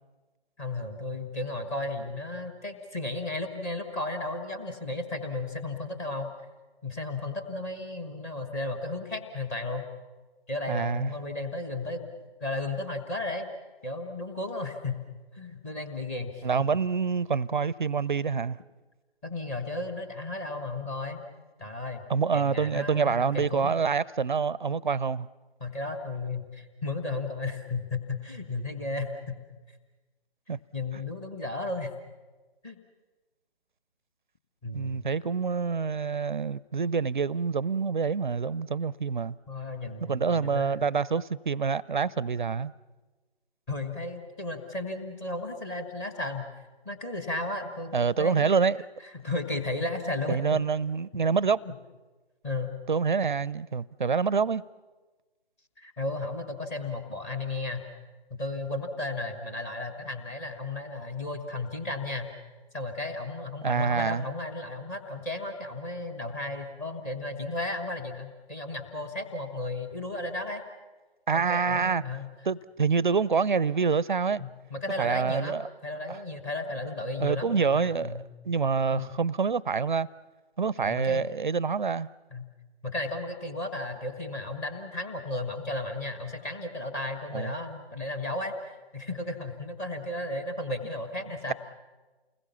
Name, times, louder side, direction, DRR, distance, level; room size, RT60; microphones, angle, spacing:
voice 1, 0.6-6.3 6.8-9.8 10.5-12.1 12.4-13.5 13.8-15.0 15.3-16.4 19.2-21.2 21.6-22.0 22.3-23.7 25.6-29.4 30.7-31.9 32.6-32.8 34.6-35.0 39.5-40.8 43.7-46.5 46.8-48.5 49.0-50.4 51.7-51.8 52.4-52.7 55.8-57.9 58.3-62.3 62.7-70.6 71.3-72.2 74.4-78.2 78.9-79.1 80.8-81.3 82.3-82.4 82.8-91.5, left 2 dB, 15° left, 1.3 m, -34 dB
voice 2, 10.7-11.1 16.4-18.6 22.1-25.3 30.5-30.6 34.7-39.4 40.1-42.7 47.9-48.8 50.3-51.6 52.9-54.6 63.6-64.3 71.3-72.0 72.5-74.4 75.0-75.7 76.1-76.2 77.2-78.2 78.4-80.1 80.6-82.1 87.3-87.5, right 5 dB, 50° right, 0.7 m, -26 dB
29.0 x 20.5 x 7.1 m
figure-of-eight pair, 150°, 31 cm